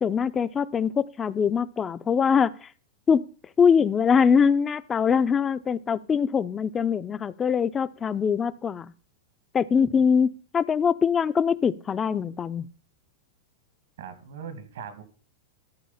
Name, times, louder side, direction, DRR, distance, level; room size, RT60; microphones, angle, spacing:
voice 1, 0.0-2.7 3.1-3.2 3.6-8.9 9.5-12.7, left 6 dB, 15° left, 16 dB, 0.4 m, -23 dB
voice 2, 14.0-15.0, right 7 dB, 80° right, 10 dB, 2.3 m, -40 dB
13.5 x 5.0 x 5.6 m, 0.40 s
supercardioid pair, 165°, 0 cm